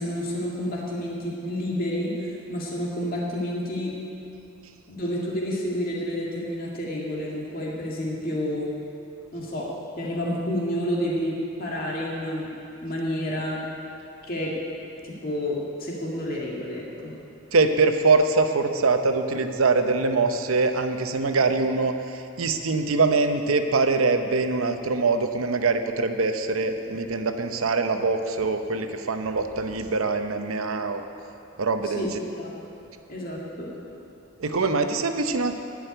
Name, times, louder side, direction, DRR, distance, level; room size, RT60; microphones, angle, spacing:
voice 1, 0.0-3.9 4.9-8.7 9.3-9.7 9.9-12.5 12.8-13.6 14.3-14.6 15.0-17.1 31.8-32.1 32.4-32.6 33.1-33.7, equal, 45° left, -4 dB, 2.1 m, -29 dB
voice 2, 17.5-31.0 31.6-32.0 34.4-35.6, right 3 dB, 90° right, 7 dB, 0.8 m, -23 dB
11.0 x 6.4 x 9.2 m, 2.7 s
head